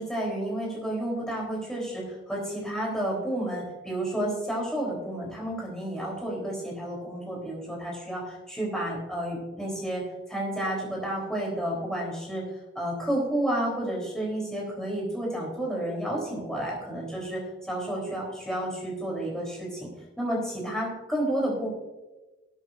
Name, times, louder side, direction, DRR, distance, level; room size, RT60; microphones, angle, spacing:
voice 1, 0.0-12.4 12.8-19.9 20.2-21.7, right 1 dB, 5° left, -3 dB, 3.7 m, -31 dB
19.5 x 8.9 x 2.6 m, 1.1 s
head